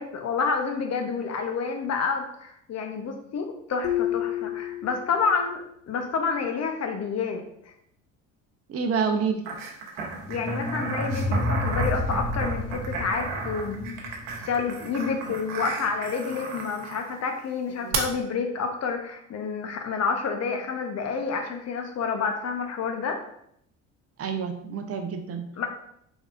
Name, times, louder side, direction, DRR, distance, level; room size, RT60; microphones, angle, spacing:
voice 1, 0.0-7.4 10.3-23.2 25.6-25.7, left 5 dB, 40° left, 5 dB, 0.8 m, -29 dB
sound 1, 3.8-5.5, left 12 dB, 75° left, 0.6 m, -30 dB
voice 2, 8.7-9.4 17.8-17.9 24.2-25.5, right 5 dB, 40° right, 5 dB, 0.7 m, -28 dB
sound 2, 9.4-17.1 17.9-18.0, right 5 dB, 75° right, 0.9 m, -34 dB
sound 3, 10.0-15.1, left 1 dB, ahead, 0.6 m, -30 dB
4.0 x 3.5 x 2.5 m, 0.72 s
hypercardioid pair, 70°, 39 cm